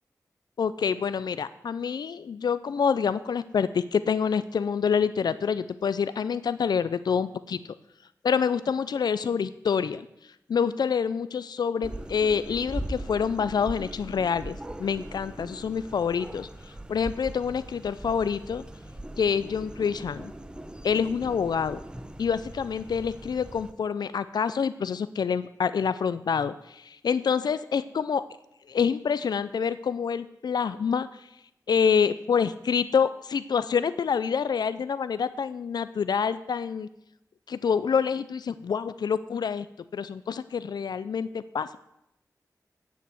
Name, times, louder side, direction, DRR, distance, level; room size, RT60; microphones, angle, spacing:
voice 1, 0.6-7.6 8.2-10.1 10.5-16.5 16.9-18.6 19.2-20.3 20.8-21.8 22.2-28.2 28.7-31.1 31.7-36.9 37.5-39.7 39.9-41.8, left 6 dB, 90° left, 14 dB, 0.4 m, -27 dB
sound 1, 11.8-23.7, right 1 dB, 15° right, 0.8 m, -40 dB
8.2 x 7.1 x 7.6 m, 0.83 s
wide cardioid pair, 60°, 7 cm